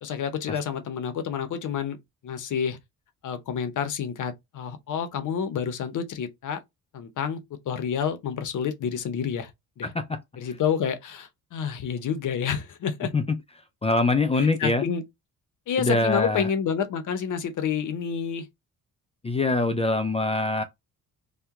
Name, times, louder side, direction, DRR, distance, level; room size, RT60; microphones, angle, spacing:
voice 1, 0.0-2.0 2.2-2.8 3.2-6.6 6.9-7.4 7.7-9.5 9.8-9.9 10.4-13.1 14.4-15.0 15.7-18.5, left 7 dB, 55° left, 0.7 m, -29 dB
voice 2, 9.8-10.2 13.1-13.2 13.8-14.8 15.8-16.5 19.2-20.6, left 2 dB, 20° left, 0.3 m, -24 dB
2.8 x 2.2 x 3.5 m
cardioid pair, 125°, 36 cm